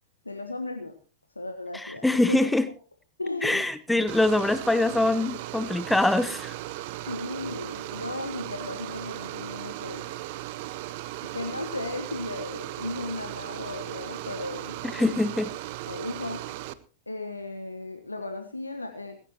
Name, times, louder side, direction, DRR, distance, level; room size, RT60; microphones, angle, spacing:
voice 1, 0.2-1.0 1.3-2.5 3.2-3.6 7.0-10.1 11.2-14.8 15.9-16.5 17.1-19.2, left 2 dB, 85° left, 6 dB, 1.5 m, -35 dB
voice 2, 1.7-2.7 3.4-6.6 14.9-15.5, left 2 dB, 5° left, 14 dB, 1.0 m, -24 dB
sound 1, 4.1-16.7, right 15 dB, 50° right, 1.0 m, -37 dB
19.0 x 17.0 x 3.0 m, 0.35 s
figure-of-eight pair, 95°, 0 cm